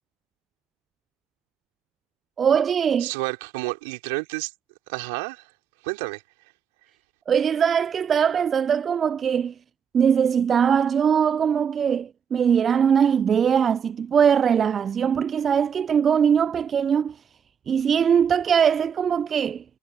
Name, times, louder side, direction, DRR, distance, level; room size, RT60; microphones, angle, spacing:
voice 1, 2.4-3.1 7.3-9.5 9.9-17.2 17.7-19.6, right 7 dB, 35° right, 0.5 m, -21 dB
voice 2, 3.0-4.5 4.9-5.5 5.8-6.2, right 28 dB, 65° right, 5.4 m, -30 dB
hypercardioid pair, 80°, 0 cm